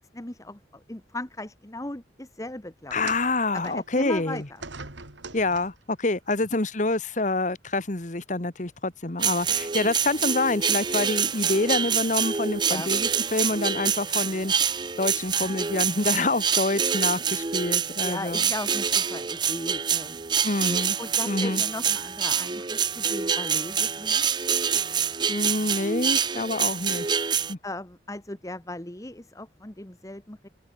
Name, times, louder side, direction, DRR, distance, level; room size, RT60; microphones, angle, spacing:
voice 1, 0.1-3.0 3.5-4.4 12.7-12.9 18.0-20.2 21.0-24.2 27.6-30.5, left 1 dB, 20° left, 1.2 m, -37 dB
voice 2, 2.9-4.5 5.3-14.5 15.0-18.4 20.4-21.0 21.3-21.6 25.3-27.1 27.5-27.6, left 2 dB, 40° left, 1.5 m, -27 dB
sound 1, 2.9-6.0 6.9-7.1 8.0-8.1, right 4 dB, 85° right, 3.6 m, -43 dB
sound 2, 9.2-27.5, right 7 dB, 25° right, 0.6 m, -26 dB
head